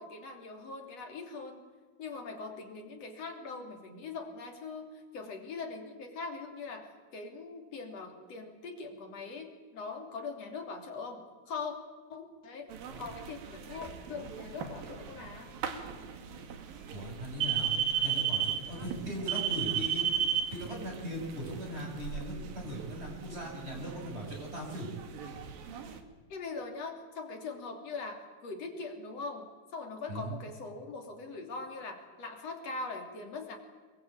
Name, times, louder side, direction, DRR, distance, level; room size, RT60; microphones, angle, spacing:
voice 1, 0.0-1.7 2.0-11.7 12.1-12.7 13.0-15.6 26.3-33.6, left 4 dB, 45° left, 3 dB, 3.9 m, -41 dB
sound 1, 12.7-26.0, right 9 dB, 75° right, 3.6 m, -36 dB
voice 2, 16.9-17.7 18.0-20.1 20.5-24.9 30.1-30.4, equal, 15° right, 0 dB, 7.1 m, -39 dB
24.5 x 21.5 x 8.7 m, 1.5 s
omnidirectional pair, 4.2 m